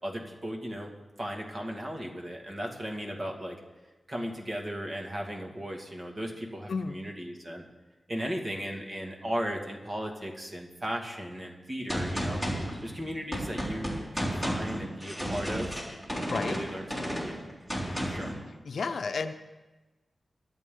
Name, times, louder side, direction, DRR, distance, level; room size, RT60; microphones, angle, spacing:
voice 1, 0.0-3.6 4.1-7.7 8.1-12.4 12.8-15.7 16.3-17.4 18.0-18.4, equal, 30° right, 1 dB, 2.2 m, -36 dB
Gunshot gunfire, 11.9-18.4, equal, 15° right, 3.7 m, -33 dB
voice 2, 16.3-16.6 17.8-18.1 18.7-19.3, left 4 dB, 75° left, 8 dB, 0.7 m, -32 dB
23.5 x 9.0 x 3.9 m, 1.2 s
wide cardioid pair, 105°, 0 cm